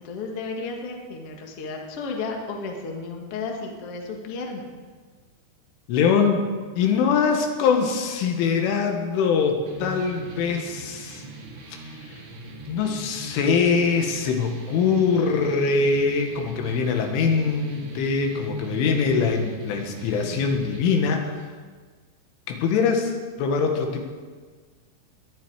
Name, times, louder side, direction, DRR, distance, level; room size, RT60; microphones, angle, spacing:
voice 1, 0.0-4.6, left 4 dB, 55° left, 1 dB, 1.7 m, -33 dB
voice 2, 5.9-6.5 6.8-11.2 12.7-21.4 22.5-23.1 23.4-24.0, left 5 dB, 90° left, 3 dB, 4.0 m, -23 dB
sound 1, 9.7-20.8, right 1 dB, 55° right, 2.9 m, -40 dB
21.0 x 11.0 x 4.8 m, 1.5 s
omnidirectional pair, 5.4 m